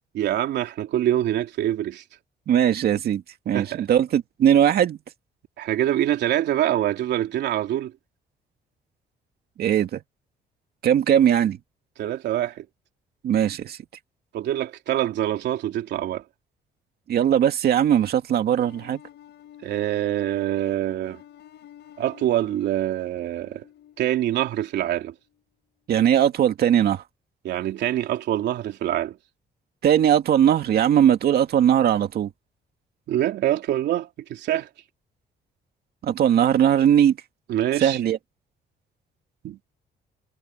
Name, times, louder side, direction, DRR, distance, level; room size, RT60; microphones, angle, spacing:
voice 1, 0.1-2.0 3.5-3.8 5.6-7.9 12.0-12.6 14.3-16.2 19.6-21.2 22.0-23.6 24.0-25.1 27.4-29.2 33.1-34.7 37.5-38.0 39.4-39.6, right 12 dB, 85° right, 3.2 m, -25 dB
voice 2, 2.5-5.0 9.6-10.0 10.8-11.6 13.2-13.8 17.1-19.0 25.9-27.0 29.8-32.3 36.0-37.2 37.8-38.2, right 10 dB, 65° right, 2.2 m, -19 dB
sound 1, 18.5-25.4, left 11 dB, 85° left, 5.6 m, -50 dB
cardioid pair, 135°, 17 cm